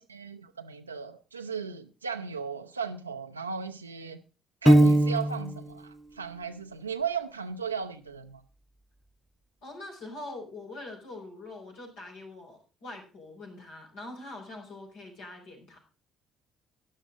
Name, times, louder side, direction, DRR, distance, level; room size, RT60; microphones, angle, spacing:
voice 1, 0.0-4.2 4.6-8.4, right 6 dB, 90° right, 0.5 m, -36 dB
Piano, 4.7-5.6, right 1 dB, ahead, 0.7 m, -19 dB
voice 2, 9.6-15.8, left 2 dB, 65° left, 5.0 m, -43 dB
13.0 x 10.5 x 3.9 m
figure-of-eight pair, 50°, 0 cm